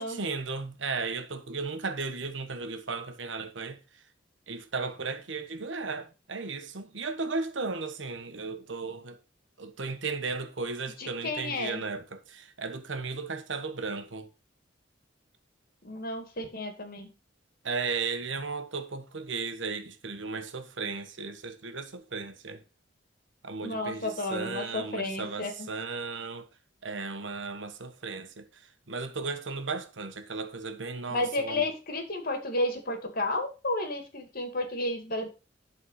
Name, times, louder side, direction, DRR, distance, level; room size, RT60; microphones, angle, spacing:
voice 1, 0.0-3.8 4.5-9.2 9.6-14.3 17.6-22.6 23.4-26.5 26.8-28.6 28.9-31.7, right 4 dB, 80° right, 1.2 m, -35 dB
voice 2, 11.0-11.8 15.8-17.1 23.6-25.7 31.1-35.3, left 2 dB, 55° left, 2.4 m, -32 dB
11.5 x 4.3 x 5.7 m
head